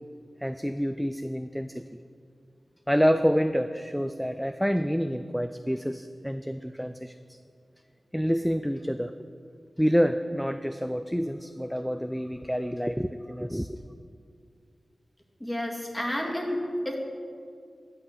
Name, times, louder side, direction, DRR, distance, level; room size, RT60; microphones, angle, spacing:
voice 1, 0.4-1.8 2.9-7.2 8.1-9.3 9.8-13.8, equal, ahead, 9 dB, 0.4 m, -27 dB
voice 2, 15.4-17.0, equal, 20° left, 0 dB, 2.1 m, -30 dB
11.0 x 6.0 x 6.4 m, 2.3 s
cardioid pair, 40°, 0 cm